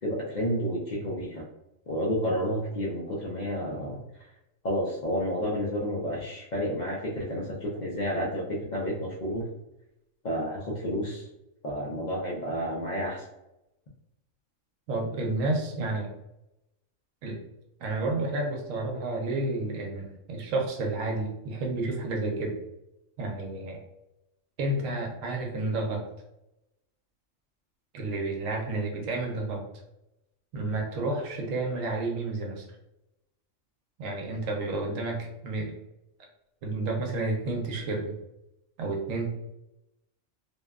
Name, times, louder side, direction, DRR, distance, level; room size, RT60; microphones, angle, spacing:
voice 1, 0.0-1.5 1.9-4.0 4.6-9.5 10.2-11.3 11.6-13.3, equal, 65° left, -5 dB, 0.4 m, -30 dB
voice 2, 14.9-16.1 17.2-17.4 17.8-22.6 23.2-23.8 24.6-26.1 27.9-29.6 30.5-32.7 34.0-35.7 36.6-38.2 38.8-39.3, right 2 dB, 80° right, 1 dB, 1.0 m, -30 dB
2.8 x 2.2 x 2.3 m, 0.90 s
omnidirectional pair, 1.4 m